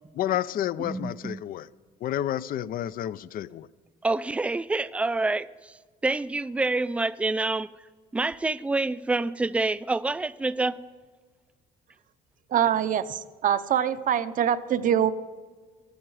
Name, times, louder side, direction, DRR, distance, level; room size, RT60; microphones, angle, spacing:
voice 1, 0.1-1.7 2.0-3.7, left 12 dB, 60° left, 0.5 m, -30 dB
voice 2, 0.8-1.4 4.0-5.7 6.0-7.7 8.1-10.8, right 3 dB, 5° right, 0.4 m, -27 dB
voice 3, 12.5-15.1, right 9 dB, 50° right, 0.7 m, -24 dB
15.0 x 12.0 x 4.8 m
cardioid pair, 110°, 17 cm